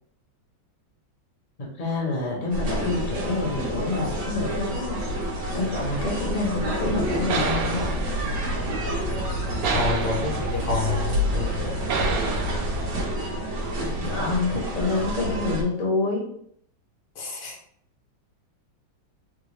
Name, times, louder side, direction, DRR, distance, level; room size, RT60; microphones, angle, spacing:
voice 1, 1.8-5.0 5.5-7.9 14.0-16.3, left 3 dB, 40° left, -3 dB, 0.7 m, -27 dB
sound 1, 2.5-15.6, equal, 55° right, 1.2 m, -29 dB
sound 2, 5.7-13.1, right 3 dB, 85° right, 0.7 m, -30 dB
sound 3, 6.9-13.1, equal, 85° left, 1.4 m, -36 dB
voice 2, 9.7-11.8 17.1-17.6, left 3 dB, 70° left, -1 dB, 1.3 m, -29 dB
3.8 x 2.2 x 3.1 m, 0.67 s
omnidirectional pair, 2.1 m